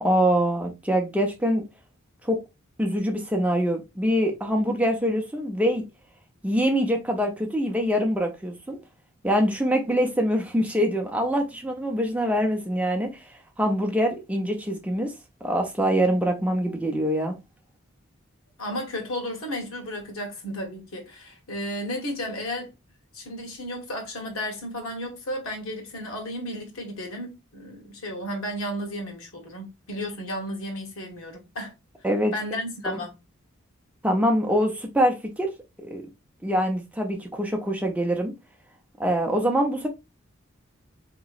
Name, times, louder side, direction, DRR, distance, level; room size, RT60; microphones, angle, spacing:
voice 1, 0.0-1.6 2.2-2.4 2.8-5.8 6.4-8.8 9.2-13.2 13.6-15.1 15.4-17.4 32.0-32.3 32.8-33.0 34.0-35.5 35.8-36.0 36.4-38.3 39.0-39.9, equal, 5° right, 0.6 m, -24 dB
voice 2, 18.6-22.7 23.1-31.7 32.3-33.1, equal, 85° left, 1.2 m, -33 dB
3.8 x 2.9 x 2.4 m
head